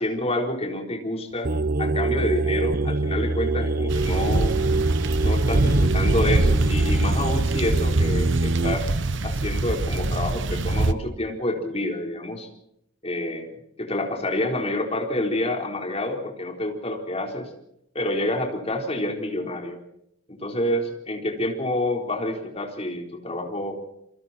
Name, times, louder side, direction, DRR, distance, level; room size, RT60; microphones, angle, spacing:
voice 1, 0.0-1.5 1.8-4.6 5.2-9.0 9.2-12.5 13.0-17.5 17.9-19.8 20.3-23.8, left 1 dB, 30° left, 2 dB, 4.2 m, -28 dB
sound 1, 1.4-8.7, right 2 dB, 50° right, 0.9 m, -25 dB
sound 2, 3.9-10.9, right 2 dB, 65° right, 1.1 m, -24 dB
27.0 x 25.5 x 4.4 m, 0.80 s
head